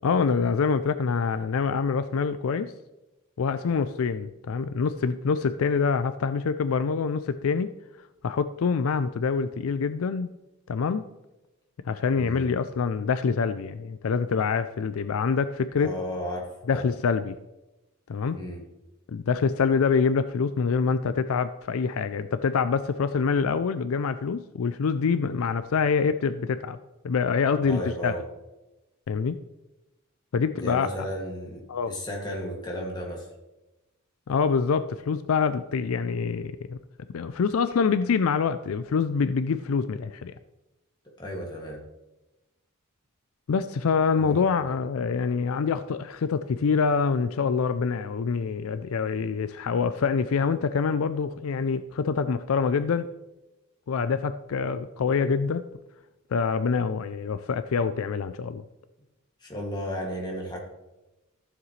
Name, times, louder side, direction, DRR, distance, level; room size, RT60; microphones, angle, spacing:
voice 1, 0.0-2.7 3.4-7.7 8.2-10.3 10.7-11.1 11.9-15.9 16.7-17.3 18.1-18.4 19.1-26.8 27.0-28.1 29.1-29.4 30.3-30.9 31.7-31.9 34.3-36.8 37.1-40.3 43.5-53.1 53.9-55.6 56.3-58.6, left 5 dB, 75° left, 11 dB, 0.4 m, -25 dB
voice 2, 12.2-12.5 15.8-16.8 18.3-18.6 27.6-28.2 30.6-33.3 41.2-41.8 44.2-44.5 59.4-60.6, equal, 20° left, -3 dB, 2.2 m, -34 dB
14.5 x 7.4 x 3.2 m, 1.0 s
head